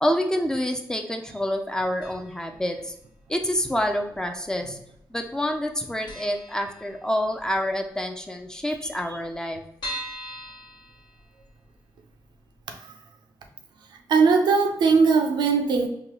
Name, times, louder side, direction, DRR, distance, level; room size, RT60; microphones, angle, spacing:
voice 1, 0.0-2.9 3.3-4.8 5.1-9.6, equal, 10° left, 4 dB, 0.5 m, -27 dB
sound 1, 2.0-2.5 2.8-2.9 3.8-4.5 4.8-5.0 5.3-5.4 5.7-5.8 6.1-7.4 7.8-7.9 8.1-8.2 8.4-8.5 9.0-11.6 12.1-12.2 12.6-12.7, equal, 75° left, 1.2 m, -39 dB
voice 2, 14.1-15.9, right 5 dB, 80° right, 4 dB, 0.5 m, -19 dB
3.8 x 2.3 x 2.9 m, 0.77 s
cardioid pair, 70°, 8 cm